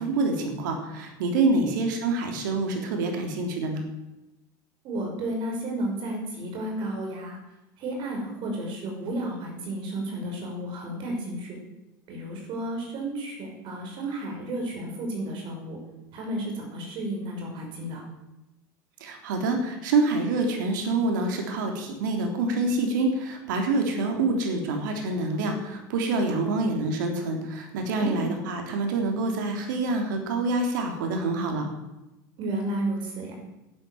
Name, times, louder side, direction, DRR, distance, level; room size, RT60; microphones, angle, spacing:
voice 1, 0.0-3.8 19.0-31.7, right 3 dB, 90° right, 3 dB, 3.4 m, -26 dB
voice 2, 4.8-7.4 7.8-11.6 12.1-15.8 16.1-18.0 28.0-28.3 32.4-33.3, right 1 dB, 55° right, 1 dB, 6.1 m, -32 dB
11.5 x 10.5 x 7.9 m, 0.98 s
supercardioid pair, 110°, 10 cm